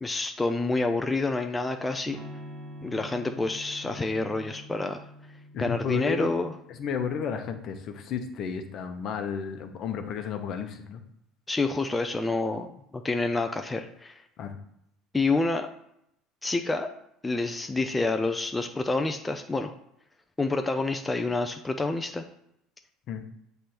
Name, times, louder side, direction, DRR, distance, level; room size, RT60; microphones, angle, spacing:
voice 1, 0.0-2.2 2.8-5.0 5.6-6.5 11.5-12.7 13.0-14.2 15.1-15.7 16.4-16.9 17.2-19.7 20.4-22.2, left 3 dB, 15° left, 6 dB, 0.6 m, -28 dB
Electric guitar / Strum, 2.1-7.8, equal, 50° right, 1.7 m, -46 dB
voice 2, 5.5-6.3 6.7-11.0 14.4-14.6 23.1-23.2, left 6 dB, 55° left, 6 dB, 1.0 m, -32 dB
7.6 x 3.4 x 4.3 m, 0.76 s
hypercardioid pair, 75°, 0 cm